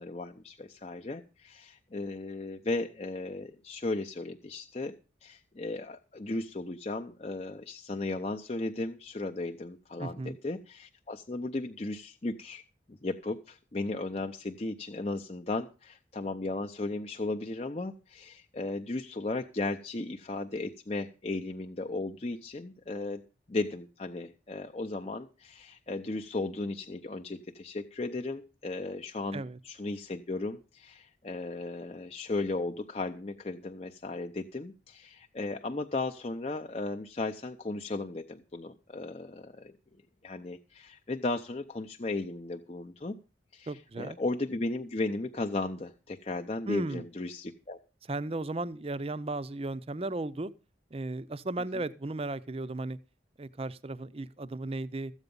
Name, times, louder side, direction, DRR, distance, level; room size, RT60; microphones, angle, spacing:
voice 1, 0.0-5.0 5.2-12.6 12.9-23.2 23.5-39.8 40.2-43.1 43.5-47.8 51.7-51.8, left 2 dB, 35° left, 0.6 m, -35 dB
voice 2, 10.0-10.4 29.3-29.6 43.7-44.2 46.7-47.0 48.1-50.5 50.9-53.0 53.4-55.1, right 2 dB, 30° right, 0.5 m, -35 dB
14.0 x 8.1 x 5.3 m
head